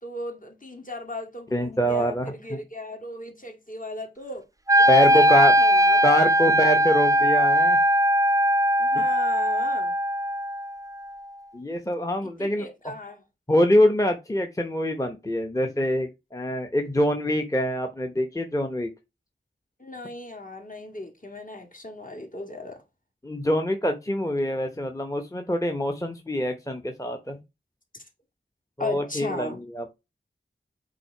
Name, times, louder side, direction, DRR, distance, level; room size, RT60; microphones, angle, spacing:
voice 1, 0.0-4.4 4.8-5.3 5.6-6.0 6.4-6.6 8.8-9.9 12.2-13.2 19.8-22.8 27.9-28.0 28.8-29.6, left 2 dB, 40° left, 2.0 m, -37 dB
voice 2, 1.5-2.6 4.9-5.5 6.0-7.8 8.9-9.0 11.5-12.7 13.5-18.9 23.2-27.4 28.8-30.0, equal, 15° left, 0.9 m, -25 dB
Wind instrument woodwind instrument, 4.7-10.8, equal, 15° right, 0.3 m, -20 dB
7.6 x 3.8 x 4.5 m
wide cardioid pair, 55°, 21 cm